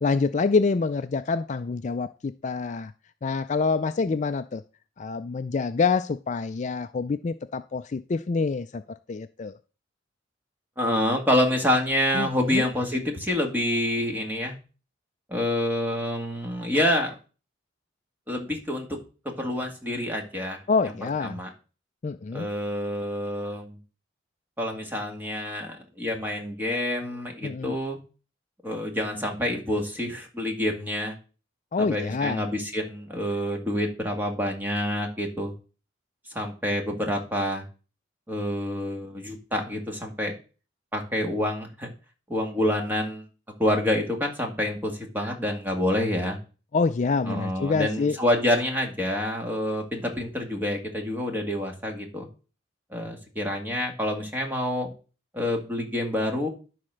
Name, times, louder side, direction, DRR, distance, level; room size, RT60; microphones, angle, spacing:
voice 1, 0.0-2.9 3.2-4.6 5.0-8.8 9.1-9.6 12.1-12.7 20.7-21.4 22.0-22.5 27.4-27.8 31.7-32.4 46.7-48.2, left 4 dB, 40° left, 11 dB, 0.4 m, -26 dB
voice 2, 10.8-14.5 15.3-17.1 18.3-19.0 19.2-20.6 21.2-21.5 22.3-23.8 24.6-28.0 28.6-31.2 31.8-35.5 36.3-37.6 38.3-40.3 40.9-41.9 42.3-43.2 43.6-46.4 47.3-52.3 52.9-54.9 55.3-56.5, left 1 dB, 10° right, 2 dB, 2.2 m, -27 dB
11.5 x 4.3 x 6.4 m, 0.35 s
head